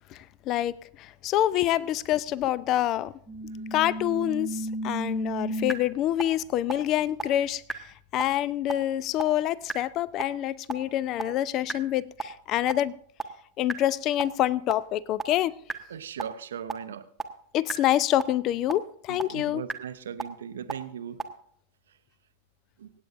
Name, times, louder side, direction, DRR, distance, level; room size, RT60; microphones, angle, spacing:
voice 1, 0.1-3.1 3.7-7.6 8.1-12.9 13.6-15.5 17.5-19.6, left 13 dB, 35° left, 23 dB, 0.4 m, -26 dB
sound 1, 3.3-5.7 6.2-6.3 6.7-6.8 7.2-7.3 7.7-7.8 8.2-8.3 8.7-8.8 9.2-9.3 9.7-9.8 10.2-10.3 10.7-10.8 11.2-11.3 11.7-11.8 12.2-12.3 12.7-12.8 13.2-13.3 13.7-13.8 14.2-14.3 14.7-14.8 15.2-15.3 15.7-15.8 16.2-16.3 16.7-16.8 17.2-17.3 17.7-17.8 18.2-18.3 18.7-18.8 19.2-19.3 19.7-19.8 20.2-20.3 20.7-20.8 21.2-21.3, right 2 dB, 10° right, 1.0 m, -30 dB
voice 2, 15.9-17.1 19.1-21.2 22.8-22.9, right 8 dB, 65° right, 12 dB, 0.6 m, -38 dB
25.5 x 8.6 x 2.5 m, 0.62 s
figure-of-eight pair, 90°, 0 cm